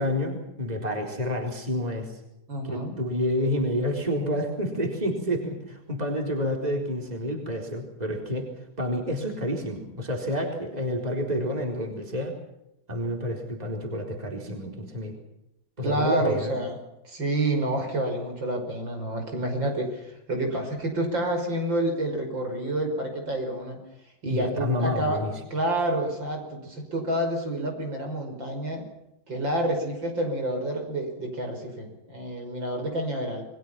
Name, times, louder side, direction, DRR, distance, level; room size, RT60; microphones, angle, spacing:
voice 1, 0.0-2.2 2.6-8.5 8.8-12.3 12.9-15.2 15.8-16.5 24.2-25.3, left 1 dB, 20° right, 2 dB, 4.3 m, -29 dB
voice 2, 2.5-2.9 15.8-16.8 17.0-23.8 24.2-25.2 25.5-28.9 29.3-33.5, right 1 dB, 60° right, 4 dB, 6.4 m, -28 dB
29.0 x 22.0 x 5.9 m, 0.85 s
omnidirectional pair, 2.3 m